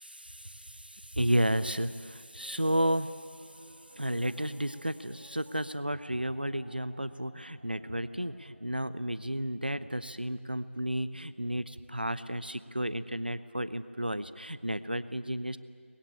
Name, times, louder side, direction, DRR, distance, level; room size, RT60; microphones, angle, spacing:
voice 1, 0.0-3.1 4.0-15.6, right 1 dB, 45° right, 14 dB, 0.8 m, -32 dB
Piano, 2.3-12.7, right 1 dB, 5° left, 1.2 m, -59 dB
23.5 x 20.5 x 8.9 m, 2.1 s
figure-of-eight pair, 175°, 7 cm